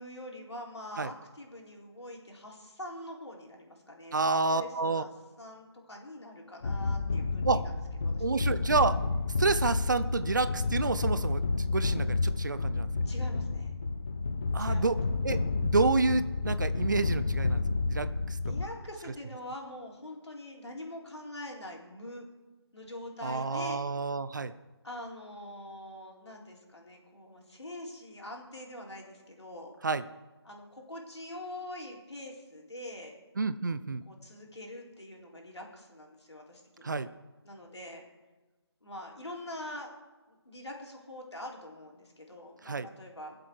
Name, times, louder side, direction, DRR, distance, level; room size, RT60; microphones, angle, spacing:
voice 1, 0.0-4.2 4.5-5.1 5.4-7.8 8.0-8.7 13.0-13.7 14.6-14.9 18.4-22.3 22.7-23.8 24.8-29.7 30.5-33.2 34.1-37.1 37.4-38.0 38.8-39.9 40.3-43.4, left 1 dB, 80° left, -1 dB, 3.9 m, -44 dB
voice 2, 4.1-5.0 7.4-7.7 8.2-9.0 9.4-12.9 14.5-15.0 15.2-18.4 23.2-24.5 29.8-30.0 33.4-34.0 36.8-37.1 42.6-42.9, right 3 dB, 45° right, 13 dB, 0.6 m, -29 dB
sound 1, 6.6-18.7, left 3 dB, 20° left, 0.4 m, -30 dB
21.0 x 7.7 x 4.7 m, 1.2 s
figure-of-eight pair, 160°, 14 cm